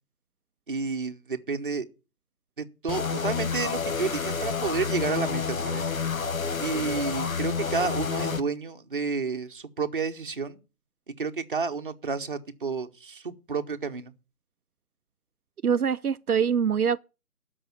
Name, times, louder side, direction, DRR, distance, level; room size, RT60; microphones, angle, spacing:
voice 1, 0.7-1.9 2.6-5.9 6.6-10.6 11.2-14.1, right 4 dB, 35° right, 1.0 m, -30 dB
sound 1, 2.9-8.4, left 6 dB, 60° left, 0.9 m, -29 dB
voice 2, 15.6-17.0, right 7 dB, 70° right, 0.6 m, -24 dB
13.0 x 5.5 x 8.3 m
figure-of-eight pair, 160°, 46 cm